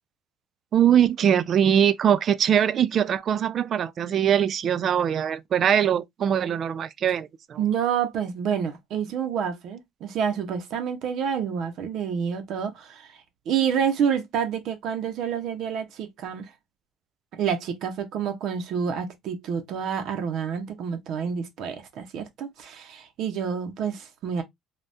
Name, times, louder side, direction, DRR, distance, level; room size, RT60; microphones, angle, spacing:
voice 1, 0.7-7.6, right 9 dB, 40° right, 0.3 m, -22 dB
voice 2, 7.6-13.2 13.5-16.5 17.4-24.4, right 7 dB, 55° right, 0.7 m, -28 dB
3.4 x 2.3 x 2.6 m
cardioid pair, 145°, 0 cm